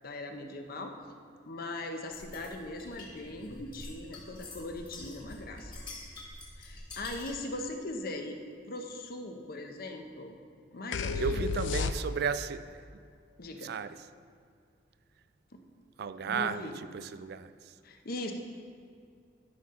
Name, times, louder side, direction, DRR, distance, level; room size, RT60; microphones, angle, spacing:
voice 1, 0.0-0.9 1.5-5.7 6.6-10.4 10.7-11.5 13.4-13.7 15.5-15.6 16.2-16.7 17.8-18.3, left 2 dB, 55° left, 0.8 m, -40 dB
sound 1, 2.1-7.5, left 1 dB, 25° left, 1.6 m, -47 dB
sound 2, 10.9-12.5, left 5 dB, 80° left, 0.4 m, -32 dB
voice 2, 11.2-13.0 13.6-14.0 16.0-17.7, right 6 dB, 60° right, 0.3 m, -34 dB
12.0 x 5.7 x 3.7 m
head